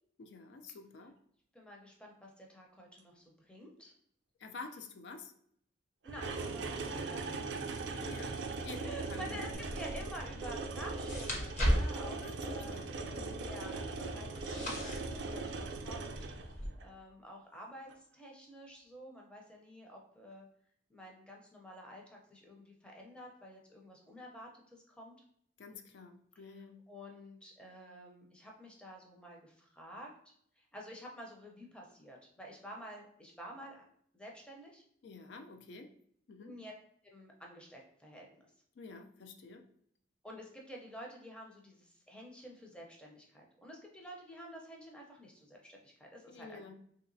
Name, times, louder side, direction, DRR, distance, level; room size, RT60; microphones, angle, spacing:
voice 1, 0.2-1.2 4.4-5.3 8.1-8.4 8.6-9.6 12.2-13.4 25.6-26.8 35.0-35.9 36.3-36.5 38.8-39.6 46.3-46.7, left 3 dB, 70° left, 5 dB, 0.3 m, -49 dB
voice 2, 1.5-3.9 6.0-7.6 7.9-8.0 8.8-12.9 13.3-20.5 20.9-25.2 26.4-33.8 34.1-34.8 36.4-36.7 37.0-38.3 40.2-46.6, equal, 5° left, -1 dB, 0.5 m, -50 dB
sound 1, 6.0-16.8 17.9-18.0, right 3 dB, 70° right, 0.4 m, -40 dB
sound 2, 9.5-16.7, equal, 40° left, 0.7 m, -38 dB
3.1 x 2.8 x 2.6 m, 0.67 s
head